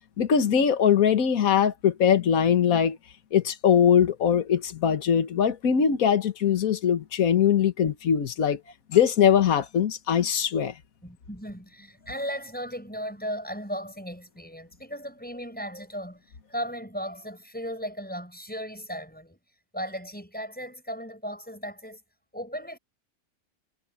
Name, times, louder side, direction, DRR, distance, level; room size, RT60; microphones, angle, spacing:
voice 1, 0.2-3.0 3.3-8.6 8.9-10.7, left 8 dB, 70° left, 1.7 m, -21 dB
voice 2, 11.0-16.2 16.5-19.4 19.7-22.0 22.3-22.8, equal, 5° left, 5.8 m, -36 dB
omnidirectional pair, 1.6 m